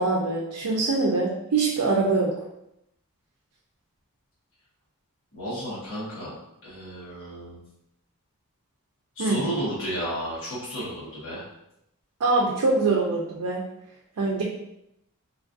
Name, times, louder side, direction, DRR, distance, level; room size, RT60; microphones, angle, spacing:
voice 1, 0.0-2.3 9.2-9.4 12.2-13.6 14.2-14.4, right 3 dB, 80° right, -2 dB, 0.5 m, -23 dB
voice 2, 5.3-6.3 6.6-7.6 9.2-11.4, equal, 60° left, -9 dB, 1.1 m, -32 dB
3.2 x 2.4 x 2.5 m, 0.82 s
head